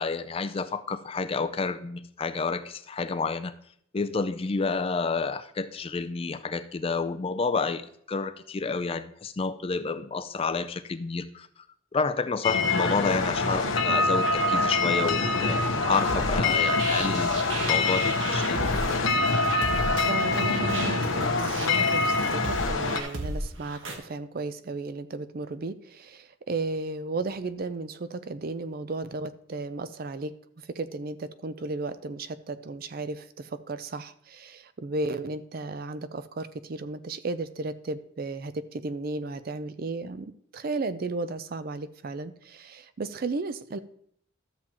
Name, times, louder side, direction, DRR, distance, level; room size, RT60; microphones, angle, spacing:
voice 1, 0.0-3.5 3.9-11.5 11.9-17.4 17.7-18.6, left 4 dB, 30° left, 12 dB, 0.4 m, -29 dB
sound 1, 12.4-23.0, left 3 dB, 90° left, 1.0 m, -25 dB
sound 2, 15.9-24.0, right 2 dB, 80° right, 1.3 m, -35 dB
voice 2, 20.1-30.3 30.7-43.8, right 3 dB, 50° right, 12 dB, 0.5 m, -34 dB
13.0 x 7.4 x 2.9 m, 0.67 s
head